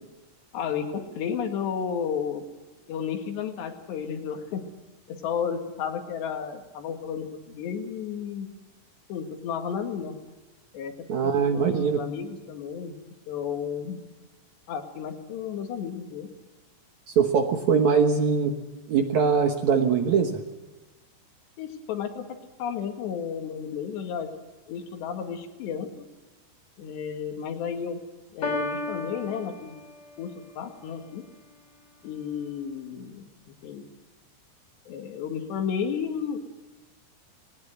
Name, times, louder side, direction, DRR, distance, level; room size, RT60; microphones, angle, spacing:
voice 1, 0.5-2.4 2.9-4.6 5.1-8.5 9.1-10.2 10.7-10.9 11.5-13.0 13.3-14.1 14.7-16.3 21.6-22.2 22.6-24.3 24.7-26.1 26.8-28.0 28.3-29.8 30.2-31.2 32.0-33.9 34.9-36.4, left 7 dB, 80° left, 5 dB, 4.3 m, -32 dB
voice 2, 11.1-12.0 17.1-18.6 18.9-20.4, right 6 dB, 60° right, 6 dB, 2.1 m, -22 dB
Piano, 28.4-30.4, left 2 dB, 35° left, 3.6 m, -33 dB
19.5 x 19.0 x 7.9 m, 1.2 s
omnidirectional pair, 4.8 m